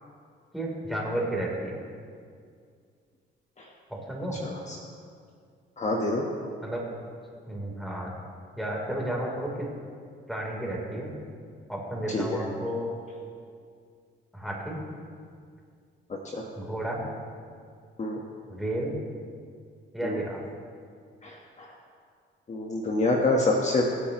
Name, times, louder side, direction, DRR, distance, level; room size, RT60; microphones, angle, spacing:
voice 1, 0.5-1.8 3.9-4.4 6.6-6.9 7.4-8.1 8.6-9.7 10.3-11.1 11.7-12.9 14.3-14.8 16.6-17.0 18.5-18.9 19.9-20.4, right 1 dB, ahead, -3 dB, 3.7 m, -32 dB
voice 2, 5.8-6.2 12.1-12.4 16.3-16.4 18.0-18.2 20.0-20.2 21.2-21.7 22.5-23.8, left 2 dB, 35° left, -1 dB, 1.4 m, -26 dB
24.0 x 8.6 x 3.1 m, 2.2 s
cardioid pair, 90°, 20 cm